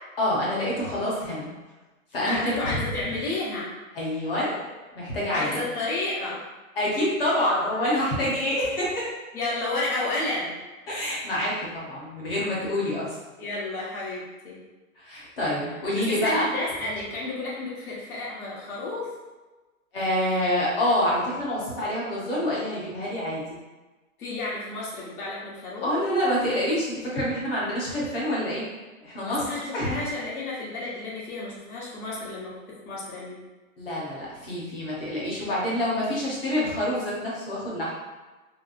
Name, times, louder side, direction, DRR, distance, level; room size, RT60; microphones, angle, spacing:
voice 1, 0.2-1.5 2.1-2.8 3.9-5.6 6.8-9.1 10.9-13.2 15.0-16.4 19.9-23.6 25.8-28.7 29.0-30.0 33.8-38.0, left 1 dB, 40° left, -6 dB, 1.0 m, -27 dB
voice 2, 2.2-3.7 5.3-6.4 9.3-10.5 13.4-14.6 16.2-19.1 24.2-26.0 29.3-33.4, left 2 dB, 85° left, -6 dB, 1.3 m, -31 dB
3.4 x 2.1 x 2.5 m, 1.2 s
hypercardioid pair, 175°, 43 cm